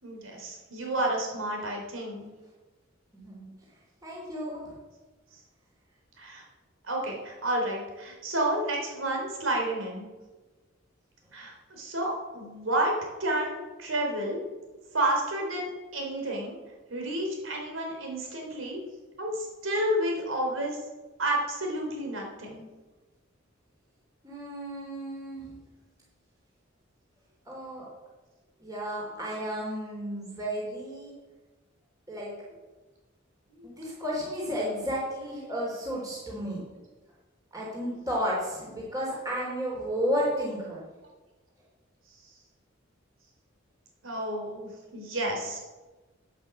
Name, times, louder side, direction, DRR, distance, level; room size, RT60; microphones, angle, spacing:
voice 1, 0.0-2.3 6.2-6.4 6.8-10.1 11.3-14.4 14.9-16.6 16.9-18.8 19.2-20.8 21.2-22.7 33.6-34.0 44.0-45.6, right 1 dB, 85° right, 0 dB, 4.2 m, -30 dB
voice 2, 3.1-3.5 4.0-4.7 24.2-25.4 27.5-27.9 28.6-31.1 32.1-32.4 33.6-36.6 37.5-40.8, equal, 20° right, -5 dB, 3.6 m, -32 dB
11.5 x 9.3 x 7.9 m, 1.2 s
head